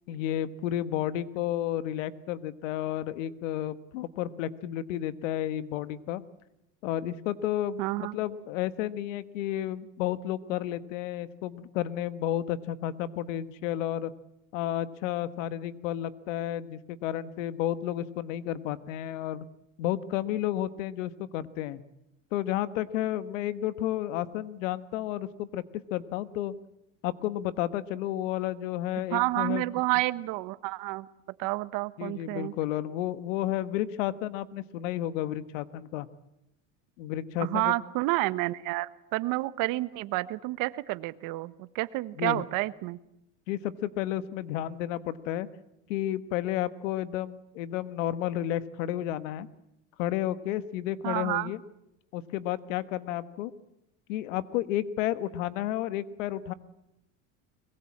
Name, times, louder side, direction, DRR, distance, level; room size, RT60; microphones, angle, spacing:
voice 1, 0.1-6.2 6.8-14.1 14.5-19.4 19.8-21.8 22.3-25.6 25.9-26.5 27.0-29.7 32.0-36.1 37.0-37.7 42.2-42.4 43.5-45.5 45.9-49.5 50.0-51.6 52.1-53.5 54.1-56.5, left 12 dB, 85° left, 14 dB, 1.4 m, -32 dB
voice 2, 7.8-8.2 29.1-31.1 31.4-32.5 37.4-43.0 51.0-51.5, right 19 dB, 60° right, 16 dB, 1.2 m, -30 dB
22.0 x 21.5 x 8.6 m, 0.84 s
supercardioid pair, 120°, 37 cm